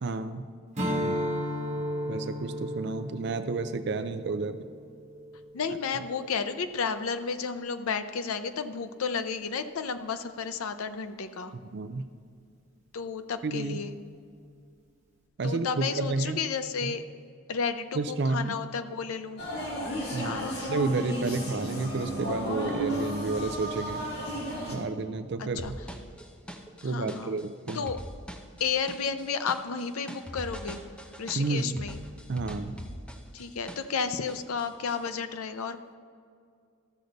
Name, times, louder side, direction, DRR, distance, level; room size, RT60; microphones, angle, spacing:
voice 1, 0.0-0.5 2.1-4.7 11.7-12.1 13.4-13.9 15.4-16.4 16.8-17.0 17.9-18.5 20.1-24.0 24.7-25.8 26.8-27.8 31.3-31.8 32.3-32.8, right 3 dB, 55° right, 10 dB, 0.4 m, -31 dB
Strum, 0.7-5.4, equal, 35° right, 1.3 m, -33 dB
voice 2, 5.5-11.5 12.9-14.0 15.4-17.0 17.5-19.4 20.2-20.6 25.4-25.7 26.8-27.4 27.7-28.0 28.6-30.8 31.2-32.0 33.3-35.8, left 5 dB, 90° left, 9 dB, 0.5 m, -32 dB
sound 1, 19.4-24.8, equal, 50° left, 1.9 m, -33 dB
sound 2, 25.6-34.0 34.3-35.1, equal, 5° left, 0.6 m, -42 dB
13.5 x 6.5 x 4.0 m, 2.3 s
head